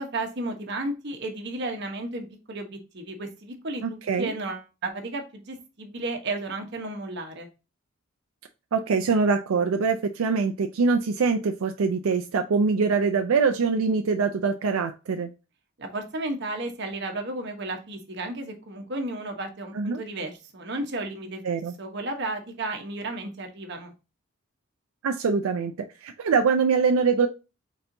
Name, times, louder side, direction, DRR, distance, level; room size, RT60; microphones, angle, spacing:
voice 1, 0.0-7.5 15.8-21.4 21.8-23.9, right 2 dB, 55° right, 4 dB, 1.0 m, -33 dB
voice 2, 3.8-4.3 8.7-15.3 19.7-20.0 21.4-21.7 25.0-25.7 26.0-27.3, right 5 dB, 85° right, 6 dB, 0.4 m, -23 dB
4.3 x 4.0 x 2.6 m, 0.30 s
head